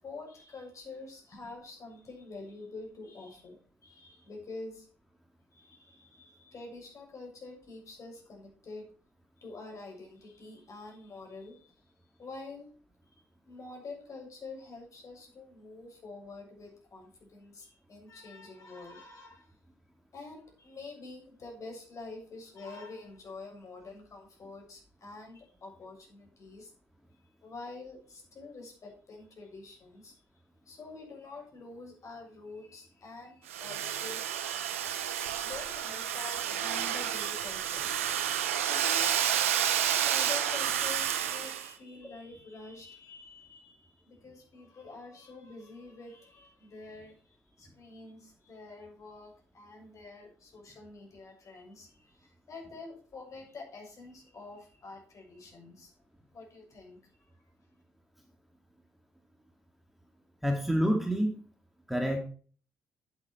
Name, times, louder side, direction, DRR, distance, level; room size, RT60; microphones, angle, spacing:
voice 1, 0.0-4.9 5.5-8.9 9.4-11.9 12.2-12.7 13.1-13.2 13.5-19.6 20.1-26.7 27.1-30.2 30.7-55.9 56.3-57.5, left 3 dB, 50° left, 1 dB, 7.0 m, -47 dB
Domestic sounds home sounds, 33.5-41.7, right 10 dB, 90° right, 0.9 m, -30 dB
voice 2, 60.4-61.4 61.9-62.2, equal, ahead, 2 dB, 2.7 m, -27 dB
10.5 x 9.7 x 4.6 m, 0.43 s
hypercardioid pair, 45°, 7 cm